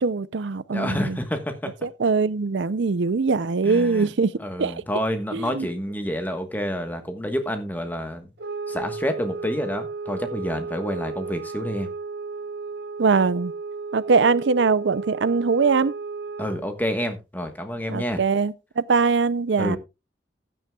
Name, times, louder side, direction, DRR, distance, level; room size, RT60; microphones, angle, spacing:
voice 1, 0.0-1.2 1.8-4.3 4.6-4.7 5.3-5.7 13.0-13.5 13.9-15.9 17.9-19.8, right 4 dB, 85° right, 0.5 m, -22 dB
voice 2, 0.7-1.7 3.6-4.1 4.4-8.3 8.7-11.9 16.4-18.2 19.6-19.8, equal, 10° left, 1.3 m, -28 dB
sound 1, 8.4-16.8, right 4 dB, 60° right, 1.0 m, -34 dB
15.0 x 9.4 x 2.3 m
head